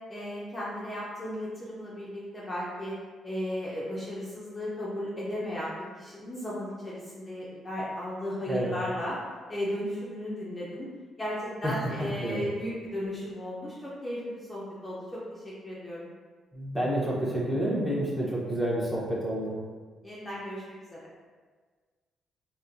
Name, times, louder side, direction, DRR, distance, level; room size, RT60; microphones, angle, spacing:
voice 1, 0.1-3.0 3.2-9.2 9.5-10.9 11.2-16.1 20.0-21.1, left 1 dB, 20° left, -7 dB, 0.6 m, -35 dB
voice 2, 11.6-12.4 16.5-19.6, right 1 dB, 5° right, -6 dB, 0.9 m, -29 dB
4.2 x 2.1 x 2.6 m, 1.5 s
cardioid pair, 90°, 0 cm